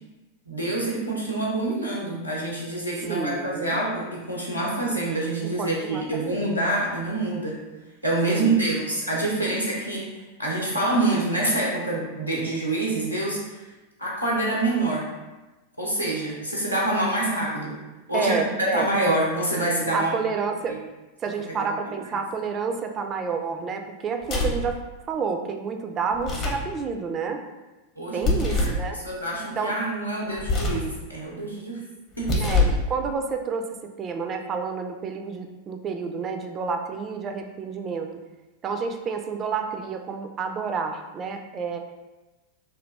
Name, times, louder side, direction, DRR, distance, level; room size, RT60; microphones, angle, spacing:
voice 1, 0.5-7.6 8.0-13.6 14.0-15.0 15.8-17.8 18.1-20.1 20.7-20.8 21.6-22.0 28.0-31.8 32.2-32.4, right 2 dB, 90° left, -5 dB, 0.8 m, -26 dB
voice 2, 3.1-3.8 5.4-6.5 8.3-8.8 18.1-18.9 19.9-20.8 21.2-24.8 25.1-27.4 28.1-29.0 29.6-29.7 32.4-33.7 34.0-38.1 38.6-41.8, right 5 dB, 25° right, 5 dB, 0.3 m, -29 dB
sound 1, 24.2-24.7 26.1-26.7 28.2-28.8 30.4-30.9 32.1-32.9, left 3 dB, 30° left, 0.7 m, -24 dB
3.1 x 2.3 x 3.2 m, 1.1 s
figure-of-eight pair, 90°, 0 cm